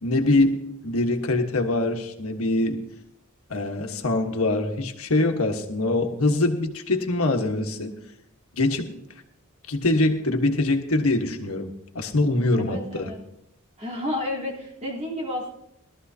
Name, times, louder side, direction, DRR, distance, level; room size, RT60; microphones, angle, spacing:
voice 1, 0.0-2.8 3.5-7.9 8.5-8.9 9.7-13.1, left 2 dB, 90° left, 5 dB, 1.3 m, -24 dB
voice 2, 12.6-13.2 13.8-15.5, left 1 dB, 30° right, -4 dB, 3.3 m, -31 dB
19.0 x 13.0 x 2.8 m, 0.78 s
head